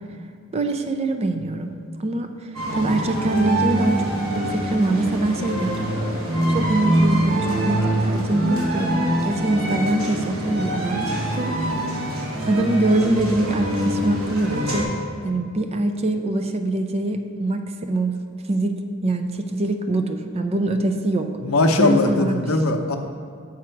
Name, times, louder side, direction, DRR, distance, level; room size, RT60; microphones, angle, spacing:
voice 1, 0.5-1.7 2.0-2.5 2.8-4.0 4.3-5.9 6.5-11.6 12.5-14.9 15.2-18.1 18.5-18.8 19.0-21.3 21.8-22.5, right 2 dB, 30° right, 6 dB, 0.4 m, -23 dB
sound 1, 2.6-14.8, right 1 dB, 85° right, 1.1 m, -24 dB
voice 2, 21.4-23.0, left 2 dB, 85° left, 4 dB, 0.6 m, -19 dB
7.1 x 4.9 x 4.4 m, 2.2 s
head